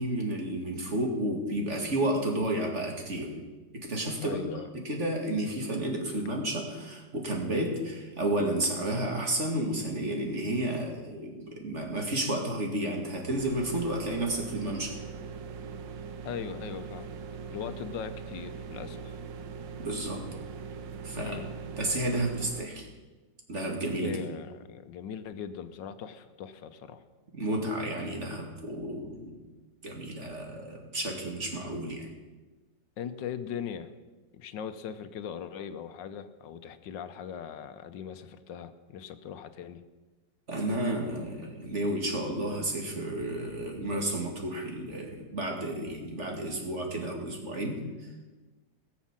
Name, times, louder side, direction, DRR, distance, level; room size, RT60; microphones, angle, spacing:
voice 1, 0.0-3.4 3.7-15.0 19.8-20.2 21.0-21.4 21.7-22.9 23.5-24.2 27.4-29.4 29.8-32.1 40.5-48.1, right 1 dB, 40° right, 1 dB, 2.4 m, -31 dB
voice 2, 4.2-4.7 16.2-17.1 17.5-19.2 21.1-21.5 24.0-27.0 33.0-33.9 34.3-39.8, left 8 dB, 80° left, 10 dB, 1.5 m, -40 dB
sound 1, 13.4-22.6, right 6 dB, 85° right, 1.6 m, -41 dB
18.0 x 7.3 x 7.4 m, 1.2 s
omnidirectional pair, 2.0 m